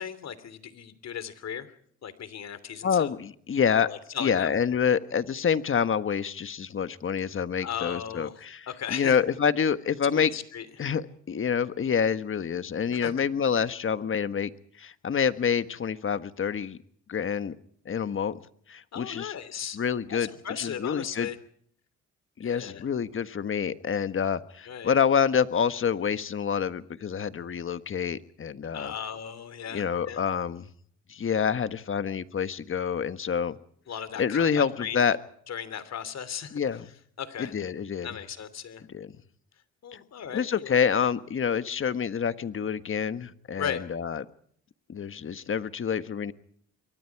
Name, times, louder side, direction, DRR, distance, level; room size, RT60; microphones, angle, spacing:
voice 1, 0.0-1.7 2.0-3.1 3.8-4.5 7.6-8.4 8.7-9.2 10.1-10.7 12.9-13.2 18.9-19.8 20.1-21.4 22.4-22.8 24.6-24.9 28.7-30.2 33.9-35.0 35.5-36.6 37.2-37.5 38.0-38.8 39.8-40.8 43.6-43.8, left 8 dB, 60° left, 14 dB, 3.0 m, -36 dB
voice 2, 2.8-3.9 4.2-10.3 10.8-14.5 14.8-16.8 17.1-17.6 17.8-18.4 18.7-19.4 19.7-20.3 20.6-21.3 22.4-28.9 29.7-30.6 31.1-33.6 34.2-35.2 36.5-36.9 37.4-38.1 38.9-39.1 39.9-40.0 40.3-44.2 44.9-46.3, left 7 dB, 45° left, 12 dB, 1.5 m, -27 dB
28.5 x 23.0 x 4.8 m, 0.63 s
cardioid pair, 90°, 30 cm